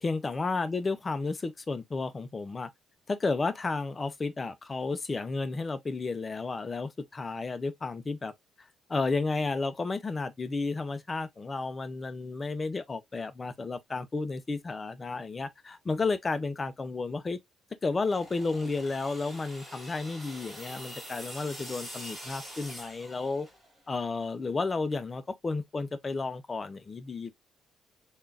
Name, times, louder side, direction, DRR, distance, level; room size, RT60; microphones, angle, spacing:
voice 1, 0.0-2.7 3.1-8.3 8.9-17.4 17.8-23.5 23.9-27.3, left 3 dB, 25° left, 0.5 m, -32 dB
sound 1, 17.9-23.8, equal, 5° right, 1.5 m, -45 dB
3.5 x 2.3 x 2.4 m
cardioid pair, 110°, 0 cm